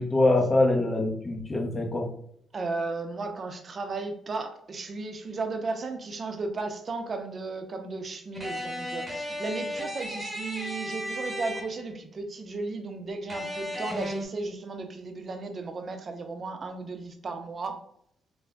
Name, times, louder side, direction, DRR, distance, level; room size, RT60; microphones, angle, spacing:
voice 1, 0.0-2.1, left 2 dB, 35° left, 1 dB, 0.7 m, -24 dB
voice 2, 2.5-17.8, right 3 dB, 40° right, 6 dB, 0.5 m, -35 dB
sound 1, 8.3-12.0 13.3-14.2, left 1 dB, 5° right, 0.9 m, -35 dB
3.4 x 2.1 x 3.4 m, 0.70 s
cardioid pair, 90°, 0 cm